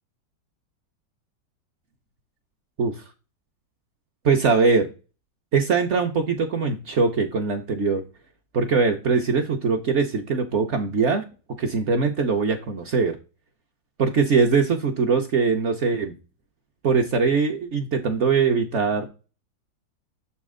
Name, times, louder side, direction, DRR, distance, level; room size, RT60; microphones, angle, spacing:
voice 1, 4.2-4.9 5.5-8.0 8.5-11.2 11.6-13.2 14.0-16.1 16.8-19.1, right 5 dB, 60° right, 4 dB, 0.8 m, -22 dB
6.9 x 4.2 x 3.6 m, 0.32 s
omnidirectional pair, 1.9 m